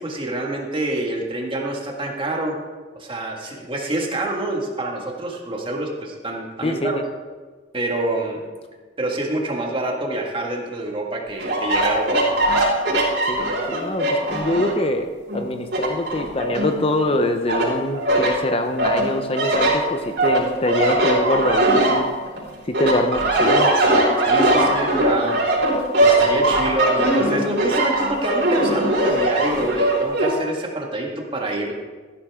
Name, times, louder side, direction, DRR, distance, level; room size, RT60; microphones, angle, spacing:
voice 1, 0.0-2.6 2.9-7.0 7.7-8.4 9.0-12.2 24.2-25.4 26.0-31.7, right 2 dB, 30° right, 0 dB, 1.9 m, -26 dB
voice 2, 6.6-7.0 13.3-15.1 15.3-22.1 22.7-23.7, left 1 dB, 35° left, 6 dB, 0.7 m, -24 dB
sound 1, 11.4-14.9 15.3-17.1 17.5-18.3 18.8-22.4 22.7-30.3, right 1 dB, 75° right, 4.7 m, -20 dB
14.5 x 12.0 x 3.7 m, 1.4 s
head